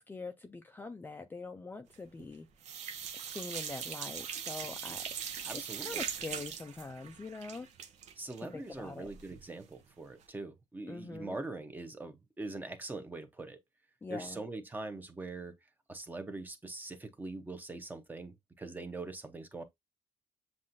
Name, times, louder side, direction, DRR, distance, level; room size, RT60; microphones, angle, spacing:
voice 1, 0.0-2.5 3.2-7.7 8.4-9.1 10.9-11.4 14.0-14.4, left 3 dB, 15° left, 0.4 m, -44 dB
sound 1, 1.9-2.3 2.6-9.5 9.8-9.9 10.2-10.3, right 8 dB, 70° right, 0.7 m, -41 dB
voice 2, 5.4-6.0 8.2-13.6 14.1-15.5 15.9-19.6, right 2 dB, 15° right, 0.8 m, -43 dB
7.3 x 2.5 x 2.6 m
cardioid pair, 125°, 12 cm